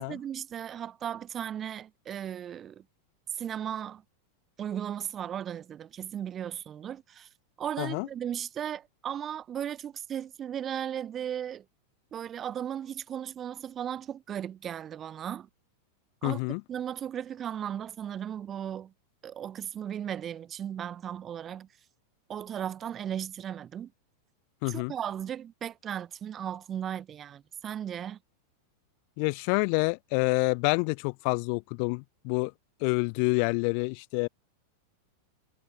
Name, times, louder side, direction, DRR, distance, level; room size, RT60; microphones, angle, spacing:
voice 1, 0.0-2.8 3.3-4.0 4.6-7.3 7.6-11.6 12.1-15.5 16.2-16.4 16.7-18.9 19.2-21.7 22.3-23.9 24.6-28.2, right 9 dB, 25° right, 5.1 m, -36 dB
voice 2, 16.2-16.6 24.6-24.9 29.2-32.5 32.8-34.3, left 40 dB or more, 45° left, 3.3 m, -27 dB
figure-of-eight pair, 90°, 0 cm